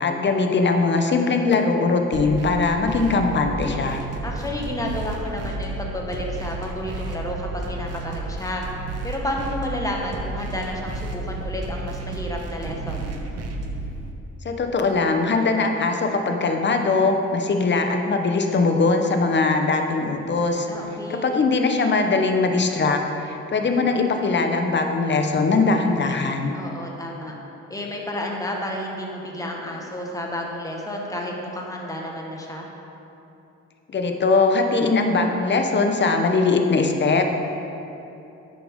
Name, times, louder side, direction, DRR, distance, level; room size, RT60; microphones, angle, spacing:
voice 1, 0.0-4.0 14.4-20.7 21.2-26.5 33.9-37.3, left 3 dB, 35° left, 4 dB, 0.9 m, -21 dB
sound 1, 2.1-14.1, right 2 dB, 55° right, 0.9 m, -32 dB
voice 2, 4.2-8.6 9.0-13.1 20.7-21.3 26.5-27.3 27.7-32.7, left 1 dB, 10° left, -1 dB, 1.4 m, -31 dB
10.5 x 6.9 x 3.7 m, 2.9 s
cardioid pair, 90°, 30 cm